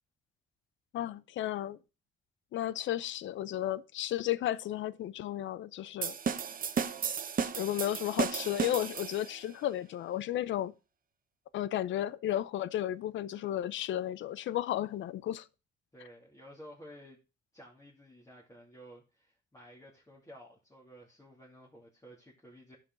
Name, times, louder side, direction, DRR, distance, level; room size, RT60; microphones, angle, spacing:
voice 1, 0.9-1.8 2.5-6.2 7.6-10.7 11.5-15.5, left 12 dB, 75° left, 0.6 m, -33 dB
sound 1, 6.0-9.4, right 6 dB, 45° right, 1.0 m, -34 dB
voice 2, 15.9-17.2 17.5-22.8, equal, 15° left, 2.7 m, -53 dB
11.0 x 5.9 x 3.9 m
cardioid pair, 90°, 20 cm